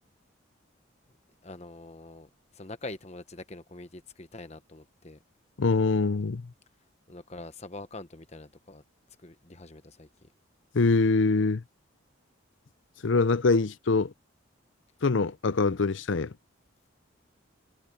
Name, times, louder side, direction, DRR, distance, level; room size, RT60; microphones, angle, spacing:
voice 1, 1.4-5.2 7.1-8.8 9.2-10.3, left 2 dB, 35° left, 1.1 m, -44 dB
voice 2, 5.6-6.5 10.7-11.6 13.0-14.1 15.0-16.3, left 3 dB, 70° left, 0.6 m, -24 dB
head